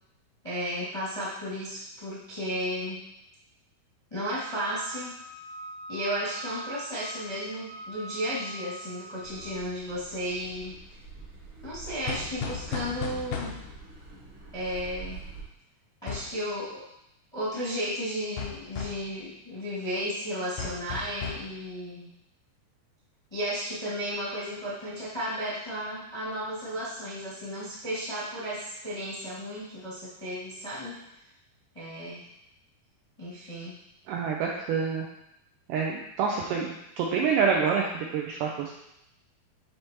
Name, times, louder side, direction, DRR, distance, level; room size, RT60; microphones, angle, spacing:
voice 1, 0.4-3.0 4.1-5.1 5.9-10.8 11.6-13.5 14.5-15.2 16.0-16.8 17.3-22.1 23.3-31.0 31.7-32.2 33.2-33.8, equal, 25° left, -10 dB, 0.5 m, -34 dB
Wind instrument woodwind instrument, 4.3-9.6, right 1 dB, 75° right, 3.2 m, -43 dB
Car passing by / Accelerating revving vroom, 9.2-15.4, right 4 dB, 60° right, 1.4 m, -46 dB
sound 1, 12.1-13.8 16.1-16.4 18.4-19.1 20.6-21.5, left 6 dB, 85° left, 1.7 m, -35 dB
voice 2, 34.1-35.1 35.7-38.7, right 6 dB, 90° right, -1 dB, 1.9 m, -27 dB
9.7 x 3.4 x 2.9 m, 0.82 s
omnidirectional pair, 4.4 m